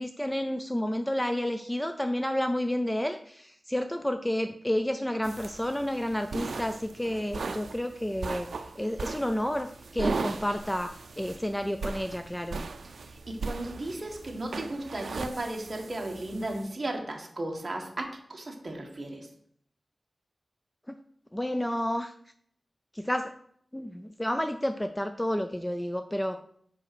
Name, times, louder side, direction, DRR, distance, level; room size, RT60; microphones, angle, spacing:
voice 1, 0.0-12.7 20.9-21.0 21.3-22.1 22.9-23.3 23.7-26.4, left 1 dB, 10° left, 8 dB, 0.4 m, -30 dB
sound 1, 5.2-16.6, right 4 dB, 80° right, 0.5 m, -38 dB
voice 2, 12.8-19.3, right 1 dB, 35° right, 1 dB, 1.5 m, -35 dB
5.0 x 4.8 x 6.0 m, 0.64 s
wide cardioid pair, 110°, 0 cm